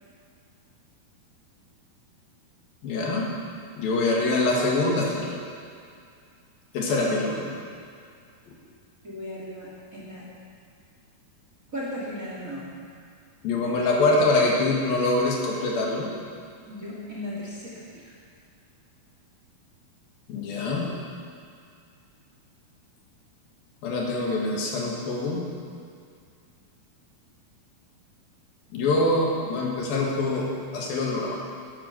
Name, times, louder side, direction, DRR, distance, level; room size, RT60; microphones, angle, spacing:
voice 1, 2.8-3.3 3.8-5.4 6.7-7.5 13.4-16.1 20.3-20.9 23.8-25.5 28.7-30.5 30.7-31.4, left 2 dB, 75° left, -2 dB, 3.6 m, -24 dB
voice 2, 9.0-10.3 11.7-12.7 16.7-18.1, left 1 dB, 25° right, -5 dB, 2.3 m, -36 dB
12.0 x 12.0 x 6.7 m, 2.3 s
omnidirectional pair, 4.3 m